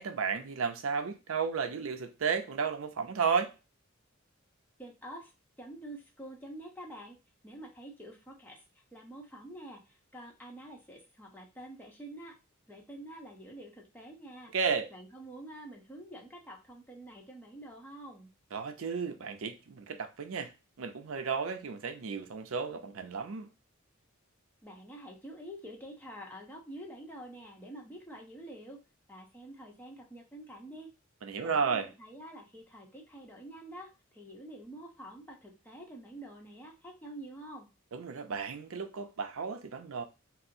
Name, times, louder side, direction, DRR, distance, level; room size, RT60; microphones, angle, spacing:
voice 1, 0.0-3.5 14.5-14.9 18.5-20.5 20.8-23.5 31.2-31.9 37.9-40.0, right 5 dB, 75° right, 0.5 m, -33 dB
voice 2, 4.8-5.3 5.6-7.2 7.4-8.6 8.9-12.3 12.7-14.5 14.9-18.3 24.6-28.8 29.1-30.9 31.4-37.7, right 1 dB, 10° left, 0.8 m, -47 dB
4.2 x 2.0 x 2.6 m
head